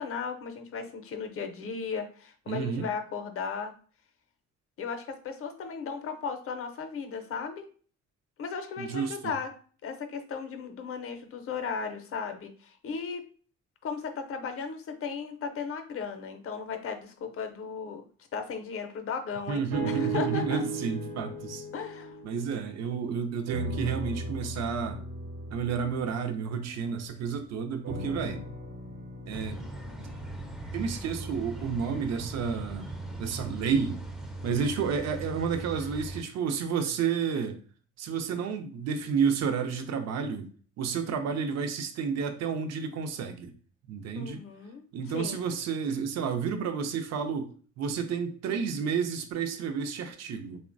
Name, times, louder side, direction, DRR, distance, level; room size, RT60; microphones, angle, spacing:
voice 1, 0.0-3.7 4.8-7.7 8.4-9.5 9.8-13.3 13.8-18.0 18.3-20.6 21.7-22.2 44.2-44.8 45.1-45.4, left 5 dB, 50° left, 6 dB, 0.5 m, -36 dB
voice 2, 2.5-2.9 8.8-9.3 19.5-21.6 22.2-25.0 25.5-28.4 29.3-29.7 30.7-32.9 33.2-34.0 34.4-37.6 38.0-40.5 40.8-43.5 43.9-44.4 44.9-50.6, right 6 dB, 60° right, 7 dB, 0.5 m, -31 dB
sound 1, 19.7-23.1 23.5-27.2 27.8-32.1 32.7-32.8, right 2 dB, 85° right, 1.0 m, -37 dB
sound 2, 29.3-36.2, right 2 dB, ahead, 0.4 m, -39 dB
3.1 x 2.1 x 2.5 m, 0.42 s
cardioid pair, 90°, 30 cm